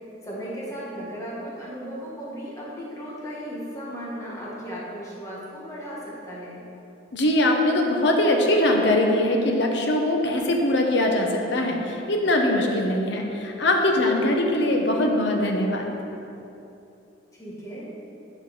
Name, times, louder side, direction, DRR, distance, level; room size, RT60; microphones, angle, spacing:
voice 1, 0.2-6.7 17.4-17.9, equal, 15° left, -7 dB, 1.6 m, -36 dB
voice 2, 7.1-15.9, left 1 dB, 65° left, 1 dB, 1.0 m, -22 dB
10.0 x 5.5 x 4.1 m, 2.8 s
head